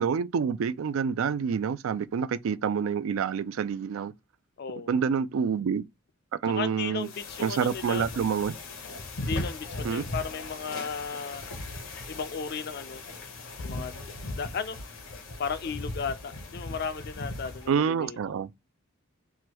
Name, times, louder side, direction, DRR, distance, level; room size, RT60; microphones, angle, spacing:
voice 1, 0.0-4.1 4.9-5.8 6.4-7.1 7.4-8.6 9.8-10.1 17.7-18.5, right 6 dB, 75° right, 0.3 m, -27 dB
voice 2, 4.6-4.9 6.5-8.1 9.2-11.5 12.1-13.0 13.6-14.8 15.4-18.4, left 6 dB, 50° left, 0.4 m, -35 dB
sound 1, 7.0-17.7, left 2 dB, 75° left, 0.9 m, -38 dB
3.3 x 2.2 x 2.9 m
head